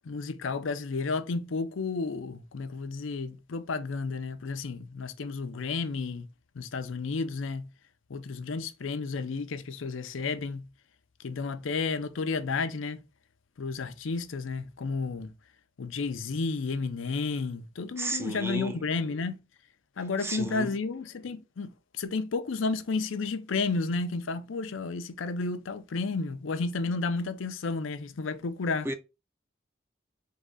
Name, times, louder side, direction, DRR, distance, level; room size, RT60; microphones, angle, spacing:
voice 1, 0.0-6.3 6.6-7.7 8.1-10.6 11.2-13.0 13.6-15.3 15.8-19.4 20.0-21.7 22.0-28.9, left 4 dB, 85° left, 0.5 m, -32 dB
voice 2, 18.0-18.8 20.2-20.7 28.8-28.9, right 2 dB, 15° right, 0.5 m, -33 dB
3.7 x 3.1 x 3.7 m
head